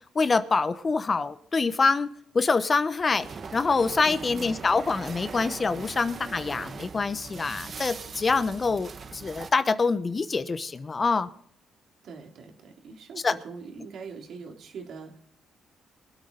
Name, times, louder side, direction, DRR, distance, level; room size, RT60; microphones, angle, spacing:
voice 1, 0.1-2.1 2.3-3.3 3.5-11.3 13.2-13.4, left 4 dB, 35° left, 12 dB, 1.0 m, -25 dB
sound 1, 3.2-9.5, right 5 dB, 45° right, 1.2 m, -41 dB
voice 2, 4.0-4.5 12.0-15.2, right 5 dB, 70° right, 2 dB, 3.2 m, -42 dB
23.5 x 8.7 x 4.0 m, 0.62 s
cardioid pair, 90°, 0 cm